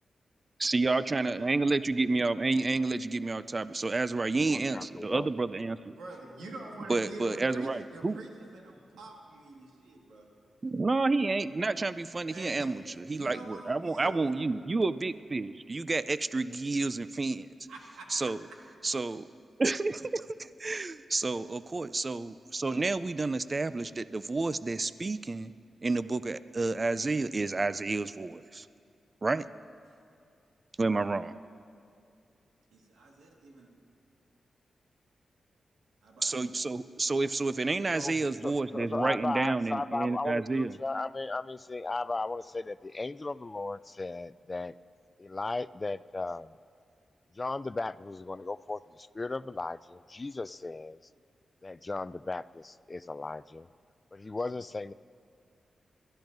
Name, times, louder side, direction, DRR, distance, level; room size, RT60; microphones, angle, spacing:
voice 1, 0.6-5.8 6.9-8.2 10.6-12.8 13.1-17.5 18.1-18.4 18.8-19.3 19.6-25.5 25.8-28.7 29.2-29.5 30.8-31.4 36.2-40.8, right 3 dB, 40° right, 15 dB, 0.4 m, -30 dB
voice 2, 4.4-5.3 5.6-5.7 37.9-44.7 45.2-46.6 47.3-51.0 51.6-53.7 54.1-54.9, left 3 dB, 35° left, 17 dB, 0.3 m, -36 dB
voice 3, 5.8-10.3 12.3-12.7 13.1-14.5 17.7-18.1 21.1-21.2 29.9-30.0 32.7-33.7 36.0-36.3, right 2 dB, 90° right, -1 dB, 1.7 m, -46 dB
22.5 x 13.5 x 2.6 m, 2.5 s
supercardioid pair, 45°, 0 cm